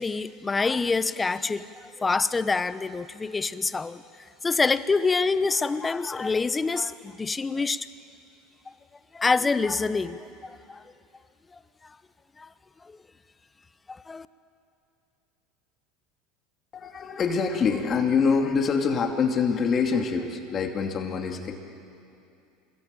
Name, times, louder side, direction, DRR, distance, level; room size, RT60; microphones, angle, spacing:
voice 1, 0.0-1.7 2.0-4.0 4.4-7.9 9.1-10.8 12.4-12.5 14.1-14.3, left 4 dB, 20° left, 15 dB, 0.9 m, -26 dB
voice 2, 16.7-21.5, left 5 dB, 35° left, 4 dB, 2.5 m, -25 dB
26.0 x 21.0 x 9.0 m, 2.6 s
supercardioid pair, 100°, 0 cm